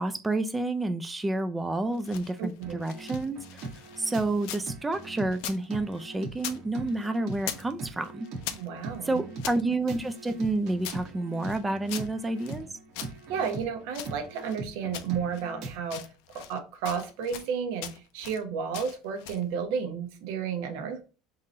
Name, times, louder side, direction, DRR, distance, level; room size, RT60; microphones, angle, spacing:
voice 1, 0.0-3.7 4.0-8.3 9.1-12.7, right 2 dB, 10° right, 0.3 m, -29 dB
sound 1, 1.8-4.7 5.0-6.6 6.9-7.7 8.0-9.6 10.1-12.6 12.9-14.6 14.9-15.5 15.8-16.6 16.8-17.5 17.8-18.4 18.7-19.5, left 10 dB, 70° left, 0.5 m, -41 dB
voice 2, 2.4-2.8 8.5-9.2 13.3-16.0 16.3-21.0, right 6 dB, 75° right, 0.9 m, -32 dB
sound 2, 2.6-15.8, right 3 dB, 50° right, 1.1 m, -41 dB
3.7 x 2.8 x 4.1 m
cardioid pair, 155°, 0 cm